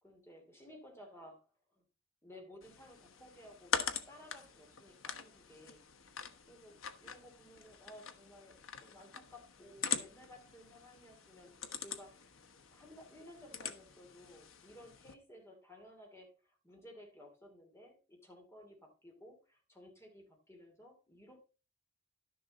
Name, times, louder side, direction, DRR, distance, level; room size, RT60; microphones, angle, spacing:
voice 1, 0.0-1.5 1.7-1.8 2.2-3.8 4.1-5.8 6.5-21.5, left 1 dB, 15° left, 1 dB, 2.9 m, -56 dB
sound 1, 2.6-15.1, left 7 dB, 90° left, 1.1 m, -43 dB
11.5 x 6.9 x 4.1 m, 0.34 s
head